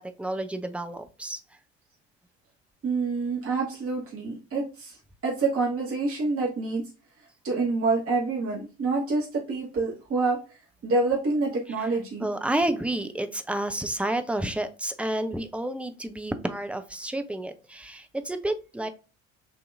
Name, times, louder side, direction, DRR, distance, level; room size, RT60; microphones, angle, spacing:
voice 1, 0.0-1.4 11.8-11.9 12.2-18.9, right 1 dB, 5° right, 8 dB, 0.6 m, -30 dB
voice 2, 2.8-6.8 7.4-10.4 10.8-12.3, right 3 dB, 40° right, -3 dB, 1.4 m, -27 dB
6.2 x 2.8 x 2.5 m, 0.33 s
figure-of-eight pair, 55°, 36 cm